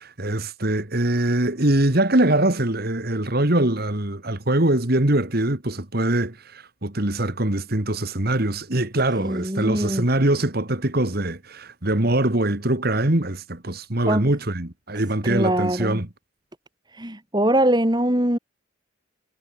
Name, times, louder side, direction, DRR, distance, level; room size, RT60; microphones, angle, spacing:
voice 1, 0.0-16.1, right 1 dB, 45° right, 2.0 m, -23 dB
voice 2, 9.2-10.1 14.1-14.3 15.2-16.0 16.9-18.4, right 1 dB, 20° right, 3.4 m, -22 dB
head